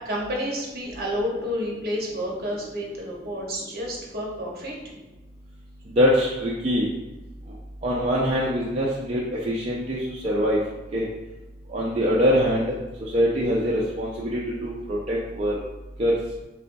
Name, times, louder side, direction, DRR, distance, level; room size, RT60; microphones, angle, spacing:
voice 1, 0.0-4.7, equal, 55° right, -2 dB, 0.9 m, -30 dB
voice 2, 6.0-6.9 7.8-10.6 10.9-11.1 11.7-15.6 16.0-16.1, equal, 35° right, -5 dB, 0.4 m, -23 dB
3.8 x 3.3 x 2.6 m, 1.1 s
head